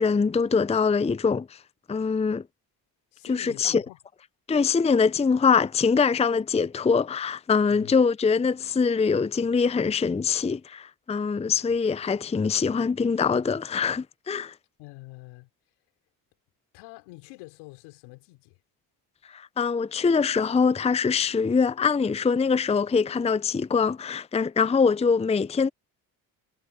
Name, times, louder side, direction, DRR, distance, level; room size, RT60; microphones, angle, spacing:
voice 1, 0.0-1.5 1.9-2.4 3.3-3.8 4.5-14.5 19.3-25.7, left 5 dB, 15° left, 0.6 m, -23 dB
voice 2, 3.1-4.0 7.7-7.9 11.4-11.6 14.8-15.5 16.7-18.6, left 23 dB, 85° left, 4.2 m, -46 dB
hypercardioid pair, 60°, 47 cm